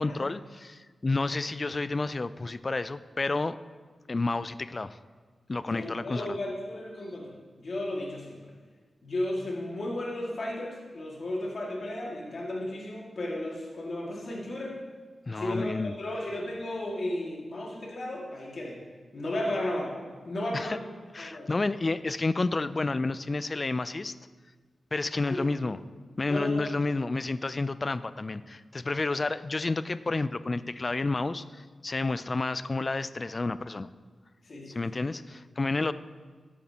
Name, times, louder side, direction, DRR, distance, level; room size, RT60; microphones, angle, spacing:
voice 1, 0.0-3.6 4.1-5.0 5.5-6.4 15.3-15.9 20.5-20.8 21.1-24.1 24.9-25.8 26.2-33.9 34.7-35.9, left 3 dB, 40° left, 15 dB, 0.3 m, -30 dB
voice 2, 5.6-8.4 9.0-14.8 15.4-18.8 19.1-20.0 20.2-20.9 21.2-21.5 25.1-25.4 26.3-26.7 34.4-34.8, left 1 dB, 65° left, -3 dB, 2.1 m, -34 dB
13.5 x 8.5 x 2.9 m, 1.5 s
cardioid pair, 70°, 0 cm